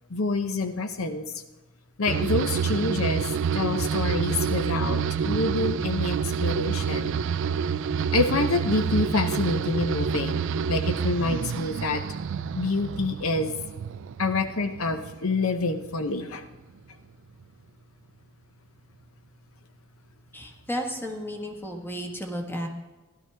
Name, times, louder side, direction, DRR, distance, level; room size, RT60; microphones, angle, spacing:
voice 1, 0.1-1.3 2.0-3.3 3.5-7.1 8.1-12.0 12.5-13.6 14.2-16.4, left 3 dB, 70° left, 9 dB, 0.7 m, -27 dB
sound 1, 2.1-15.4 15.7-16.3, right 6 dB, 60° right, 0.3 m, -28 dB
voice 2, 20.3-22.7, equal, 10° left, 2 dB, 1.4 m, -33 dB
16.0 x 12.0 x 3.4 m, 1.2 s
head